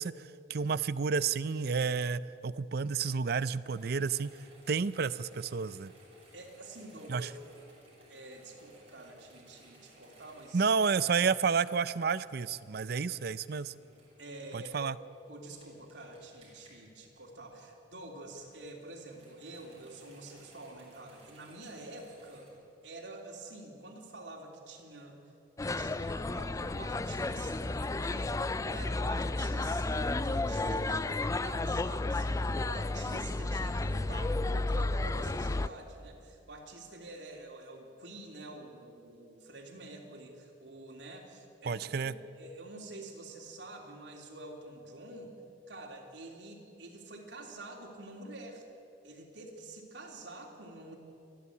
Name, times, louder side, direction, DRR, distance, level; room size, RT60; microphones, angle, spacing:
voice 1, 0.0-4.3 4.7-5.9 7.1-7.3 10.5-13.7 14.5-15.0 41.7-42.1, right 5 dB, 60° right, 17 dB, 0.5 m, -30 dB
sound 1, 3.6-17.7 18.1-22.5, right 1 dB, 35° right, 6.6 m, -60 dB
voice 2, 6.3-7.3 8.1-10.7 14.2-14.9 15.3-22.5 22.8-25.2 25.6-45.4 45.7-48.6 49.0-51.0, right 2 dB, 75° right, 0 dB, 3.3 m, -48 dB
sound 2, 25.6-35.7, left 2 dB, 20° left, 0.4 m, -32 dB
27.5 x 11.0 x 8.4 m, 2.6 s
head